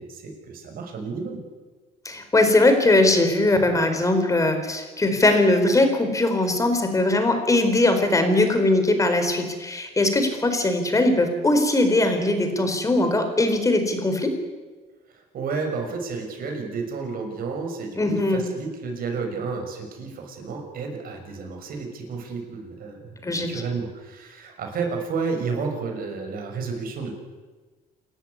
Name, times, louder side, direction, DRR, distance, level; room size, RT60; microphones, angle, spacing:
voice 1, 0.0-1.4 15.1-27.1, right 4 dB, 60° right, 3 dB, 6.5 m, -31 dB
voice 2, 2.0-14.3 18.0-18.4 23.2-23.6, left 2 dB, 20° left, 7 dB, 4.6 m, -20 dB
28.0 x 13.5 x 9.8 m, 1.3 s
cardioid pair, 110°, 17 cm